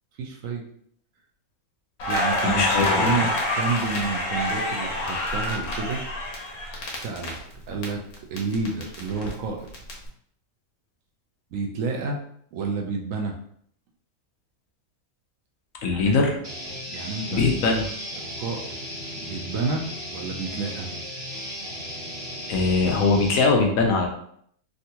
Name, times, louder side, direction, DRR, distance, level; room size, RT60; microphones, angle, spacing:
voice 1, 0.2-0.6 2.1-6.0 6.9-7.4 7.7-8.0 8.3-9.7 11.5-12.2 12.5-13.3 15.9-16.2 16.9-17.5 18.4-18.8 19.2-20.9, right 4 dB, 70° right, 2 dB, 0.9 m, -30 dB
Crackle, 2.0-7.8 8.1-9.9, left 1 dB, 90° left, 1.3 m, -27 dB
voice 2, 2.4-3.2 15.8-16.3 17.3-17.8 22.5-24.1, left 3 dB, 70° left, 1 dB, 1.0 m, -21 dB
sound 1, 16.4-23.3, equal, 45° right, 1.0 m, -36 dB
3.6 x 2.3 x 2.8 m, 0.66 s
omnidirectional pair, 1.5 m